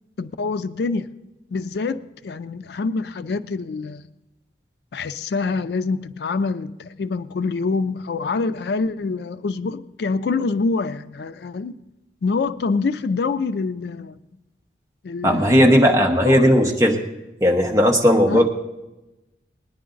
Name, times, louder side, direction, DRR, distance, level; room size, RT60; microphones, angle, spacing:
voice 1, 0.2-1.1 1.5-4.0 4.9-11.7 12.2-14.2 15.0-15.6 16.2-16.4 18.3-18.5, left 4 dB, 65° left, 0.4 m, -25 dB
voice 2, 15.2-17.0 17.4-18.5, equal, 15° right, 1.0 m, -16 dB
19.0 x 10.0 x 3.8 m
head